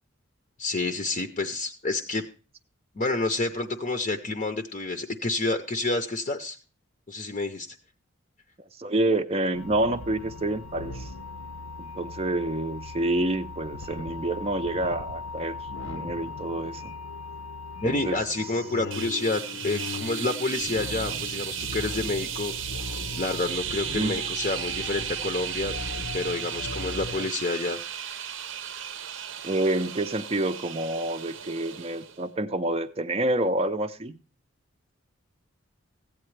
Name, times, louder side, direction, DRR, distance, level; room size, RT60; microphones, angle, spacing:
voice 1, 0.6-2.2 3.0-6.6 7.1-7.7 17.7-22.5 23.2-25.7 26.1-27.8, left 2 dB, 35° left, 0.6 m, -29 dB
voice 2, 8.8-11.1 11.8-15.6 15.8-16.9 17.8-18.2 21.1-21.2 23.9-24.2 27.2-27.3 29.4-34.1, right 1 dB, 30° right, 0.4 m, -28 dB
sound 1, 9.5-27.3, left 3 dB, 75° left, 0.7 m, -38 dB
sound 2, 18.9-32.2, right 9 dB, 65° right, 0.7 m, -35 dB
14.5 x 8.7 x 3.2 m
head